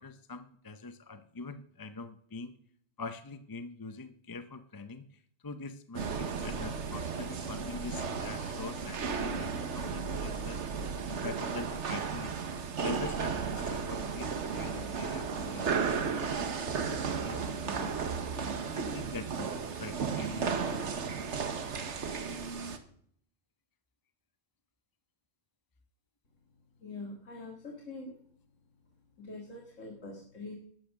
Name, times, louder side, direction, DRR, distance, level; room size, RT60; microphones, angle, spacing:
voice 1, 0.0-2.5 3.0-10.6 11.1-12.3 12.8-18.2 18.7-20.8, left 3 dB, 25° left, 10 dB, 0.5 m, -44 dB
sound 1, 5.9-22.8, right 5 dB, 70° right, 1.4 m, -34 dB
voice 2, 26.8-28.1 29.2-30.6, left 2 dB, 80° left, 1 dB, 2.2 m, -44 dB
12.5 x 8.4 x 6.4 m, 0.63 s
omnidirectional pair, 1.3 m